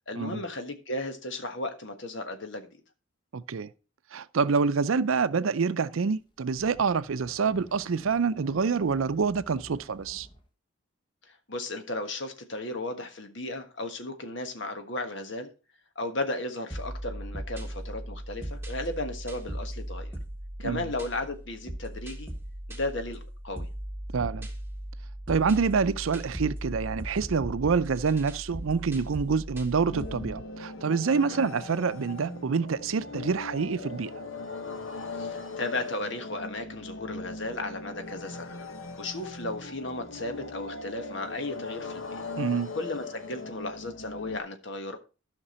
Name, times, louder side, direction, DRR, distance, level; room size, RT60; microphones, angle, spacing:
voice 1, 0.1-2.7 11.3-15.5 15.9-20.2 20.6-22.3 22.7-23.7 31.3-31.4 35.1-38.6 39.0-42.2 42.7-45.0, left 2 dB, 60° left, 1.5 m, -35 dB
voice 2, 3.3-3.7 4.1-10.3 20.6-20.9 24.1-24.5 25.3-34.1 42.4-42.7, right 5 dB, 85° right, 0.5 m, -27 dB
sound 1, 6.2-10.5, equal, 25° left, 1.1 m, -51 dB
sound 2, 16.7-30.4, right 1 dB, 10° right, 1.3 m, -38 dB
sound 3, 29.9-44.4, left 3 dB, 80° left, 1.1 m, -39 dB
12.5 x 5.9 x 4.3 m
head